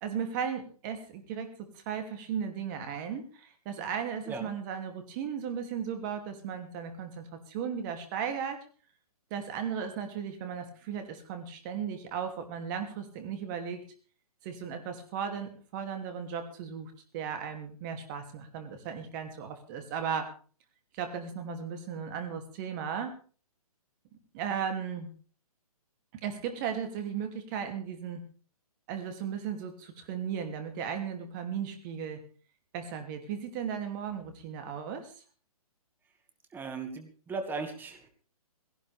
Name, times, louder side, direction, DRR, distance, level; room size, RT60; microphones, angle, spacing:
voice 1, 0.0-8.6 9.3-13.8 14.4-20.3 20.9-23.1 24.3-25.1 26.1-28.2 28.9-32.2 32.7-35.1, right 7 dB, 30° right, 6 dB, 2.7 m, -36 dB
voice 2, 36.5-38.1, right 4 dB, 10° right, 7 dB, 1.9 m, -37 dB
18.5 x 17.0 x 3.5 m, 0.40 s
hypercardioid pair, 140°, 19 cm